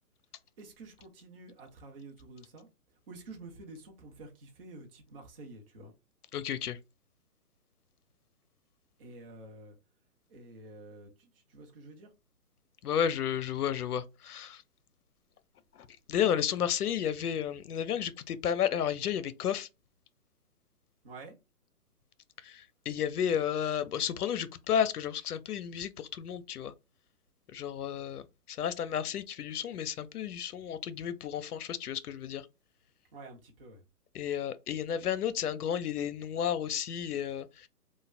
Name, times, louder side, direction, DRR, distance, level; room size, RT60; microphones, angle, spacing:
voice 1, 0.6-2.7 3.1-5.9 9.0-9.8 10.3-12.1 21.0-21.3 33.1-33.8, right 2 dB, 40° right, 0.8 m, -49 dB
voice 2, 6.3-6.8 12.8-14.6 15.8-19.7 22.4-26.7 27.5-28.2 28.5-32.4 34.1-37.7, left 9 dB, 75° left, 0.6 m, -32 dB
3.2 x 2.2 x 2.4 m
hypercardioid pair, 145°, 46 cm